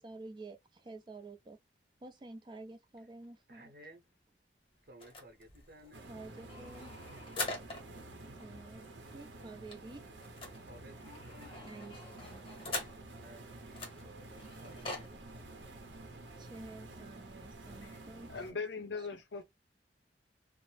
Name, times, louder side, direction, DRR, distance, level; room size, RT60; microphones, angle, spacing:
voice 1, 0.0-1.6 2.0-3.7 6.1-6.9 8.4-8.9 9.1-10.0 11.6-12.4 16.4-18.9, right 2 dB, 25° right, 0.4 m, -50 dB
voice 2, 3.5-4.0 4.9-6.1 7.9-8.0 10.7-11.7 13.2-15.2 15.5-15.7 15.9-16.0, right 1 dB, 55° right, 0.9 m, -56 dB
sound 1, 5.0-8.0 8.4-8.5 8.7-8.9 9.1-13.3 13.7-15.1, left 2 dB, 30° left, 0.9 m, -44 dB
sound 2, 5.9-18.5, right 2 dB, 85° right, 0.7 m, -50 dB
voice 3, 18.3-19.4, left 4 dB, 80° left, 0.6 m, -39 dB
2.6 x 2.0 x 3.2 m
head